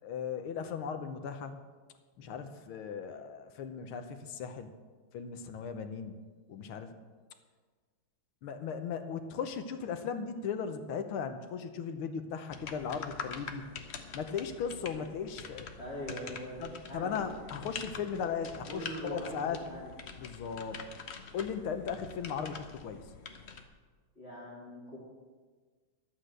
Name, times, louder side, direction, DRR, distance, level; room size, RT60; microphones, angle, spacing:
voice 1, 0.0-1.5 2.2-4.7 5.1-6.2 6.5-6.9 8.4-13.7 14.1-15.7 16.6-19.6 20.2-20.8 21.3-23.0, left 6 dB, 75° left, 8 dB, 1.7 m, -37 dB
sound 1, 12.5-23.6, left 5 dB, 50° left, 0.7 m, -45 dB
voice 2, 15.8-17.1 18.7-19.4 19.7-19.9 24.2-25.0, equal, 30° left, -5 dB, 2.9 m, -41 dB
11.5 x 8.2 x 7.7 m, 1.4 s
omnidirectional pair, 2.4 m